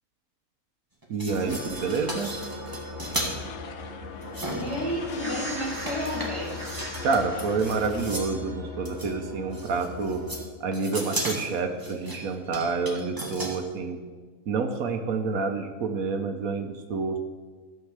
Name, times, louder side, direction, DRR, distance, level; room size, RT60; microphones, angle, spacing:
sound 1, 1.0-3.3 4.2-5.2 5.5-8.4 8.8-9.1 9.5-10.4 10.7-13.6, right 1 dB, 15° right, 1.6 m, -35 dB
voice 1, 1.1-2.3 7.0-10.2 10.6-14.0 14.5-17.2, right 4 dB, 75° right, 5 dB, 1.3 m, -28 dB
sound 2, 1.3-10.5, left 1 dB, 50° right, 1.9 m, -38 dB
sound 3, 3.0-8.0, left 9 dB, 75° left, 1.0 m, -43 dB
voice 2, 4.5-6.5, left 1 dB, 20° left, -4 dB, 2.4 m, -31 dB
13.0 x 4.5 x 7.4 m, 1.4 s
omnidirectional pair, 1.5 m